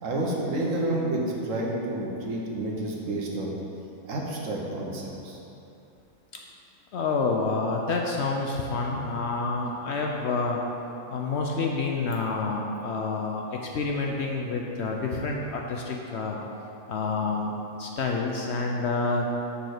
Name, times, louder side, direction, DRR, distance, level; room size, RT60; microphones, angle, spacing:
voice 1, 0.0-3.5 4.0-5.4, right 1 dB, 65° right, -2 dB, 1.4 m, -29 dB
voice 2, 6.9-10.6 11.1-16.4 16.9-17.5 17.8-19.3, left 3 dB, 60° left, 0 dB, 0.8 m, -28 dB
6.5 x 4.2 x 6.5 m, 2.8 s
omnidirectional pair, 1.5 m